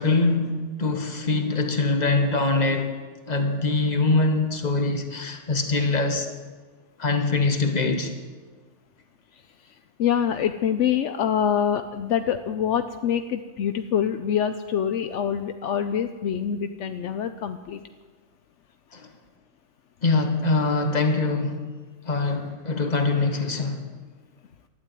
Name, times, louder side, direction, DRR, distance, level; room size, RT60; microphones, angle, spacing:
voice 1, 0.0-2.9 3.3-6.3 7.0-8.1 18.9-19.1 20.0-21.6 22.0-23.8, left 3 dB, 35° left, 5 dB, 1.4 m, -23 dB
voice 2, 10.0-17.8, left 8 dB, 75° left, 8 dB, 0.9 m, -25 dB
12.0 x 10.0 x 8.9 m, 1.4 s
omnidirectional pair, 1.3 m